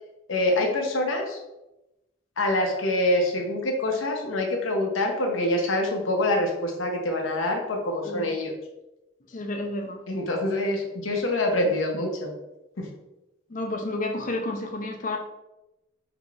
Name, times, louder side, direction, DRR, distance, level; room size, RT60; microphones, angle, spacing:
voice 1, 0.3-1.4 2.4-8.5 10.1-12.3 12.8-12.9, left 1 dB, 90° left, 2 dB, 0.8 m, -25 dB
voice 2, 8.0-8.4 9.3-10.0 13.5-15.2, left 2 dB, 40° left, 3 dB, 0.5 m, -31 dB
4.9 x 2.8 x 2.4 m, 0.95 s
head